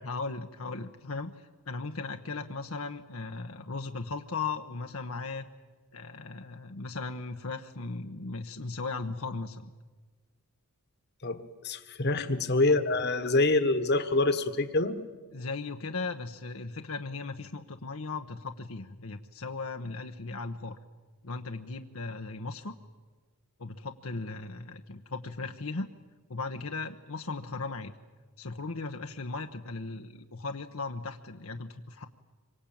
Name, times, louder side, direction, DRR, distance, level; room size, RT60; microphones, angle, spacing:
voice 1, 0.0-5.4 5.9-9.7 12.1-12.4 15.3-20.7 21.2-22.7 23.6-25.9 26.3-27.9 28.4-32.1, left 3 dB, 70° left, 5 dB, 1.1 m, -37 dB
voice 2, 11.2-14.9, left 2 dB, 50° left, 11 dB, 1.5 m, -26 dB
26.5 x 24.0 x 8.8 m, 1.3 s
head